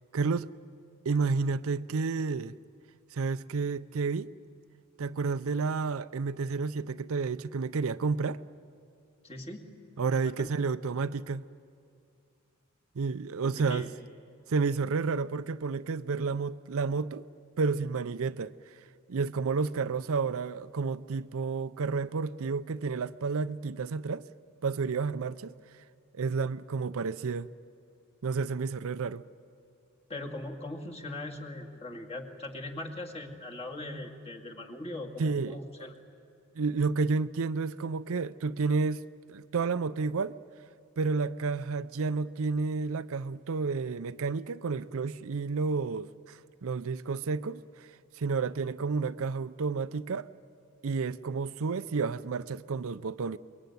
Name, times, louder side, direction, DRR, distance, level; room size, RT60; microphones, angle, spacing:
voice 1, 0.1-0.5 1.0-2.5 3.1-4.3 5.0-8.4 10.0-11.5 13.0-13.9 14.5-17.3 17.6-18.5 19.1-24.2 24.6-25.5 26.1-27.5 28.2-29.2 35.2-35.6 36.6-39.0 39.3-40.4 41.0-47.9 48.2-50.3 50.8-53.4, right 4 dB, 70° right, 0.5 m, -30 dB
voice 2, 9.2-9.6 10.2-10.5 13.4-13.9 30.1-35.9, left 2 dB, 30° left, 2.3 m, -40 dB
24.5 x 22.0 x 9.4 m
head